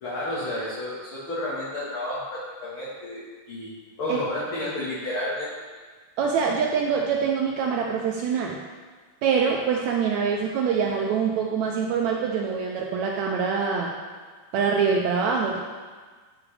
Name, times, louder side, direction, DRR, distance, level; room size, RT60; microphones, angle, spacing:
voice 1, 0.0-3.7 4.0-5.5, left 1 dB, 45° left, -9 dB, 2.0 m, -31 dB
voice 2, 6.2-8.6 9.2-13.9 14.5-15.6, right 6 dB, 80° right, 0 dB, 1.6 m, -24 dB
12.0 x 5.9 x 3.4 m, 1.5 s
omnidirectional pair, 3.9 m